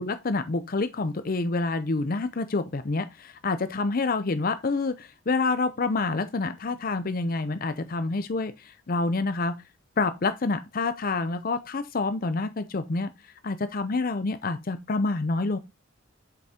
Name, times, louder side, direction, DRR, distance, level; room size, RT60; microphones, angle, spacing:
voice 1, 0.0-9.6 10.0-13.1 13.4-15.6, left 3 dB, 45° left, 0.6 m, -27 dB
8.2 x 6.9 x 2.8 m
head